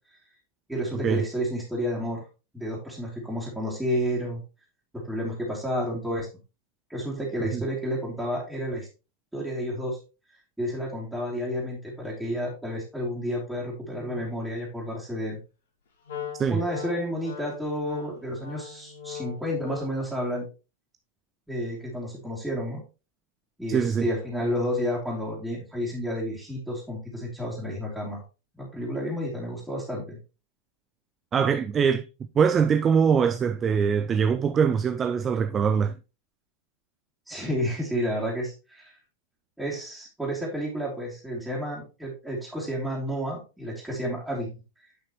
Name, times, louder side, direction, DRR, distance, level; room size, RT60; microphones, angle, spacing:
voice 1, 0.7-2.2 2.5-4.4 4.9-6.3 6.9-8.9 9.3-10.0 10.6-15.4 16.5-20.5 21.5-22.8 23.6-28.2 28.6-30.2 37.3-38.9 39.6-44.5, equal, 5° right, 2.9 m, -31 dB
Wind instrument woodwind instrument, 16.1-20.1, left 8 dB, 60° left, 2.2 m, -40 dB
voice 2, 23.7-24.1 31.3-32.1 32.4-36.0, right 6 dB, 25° right, 0.5 m, -23 dB
9.6 x 5.7 x 3.1 m
figure-of-eight pair, 90°, 0 cm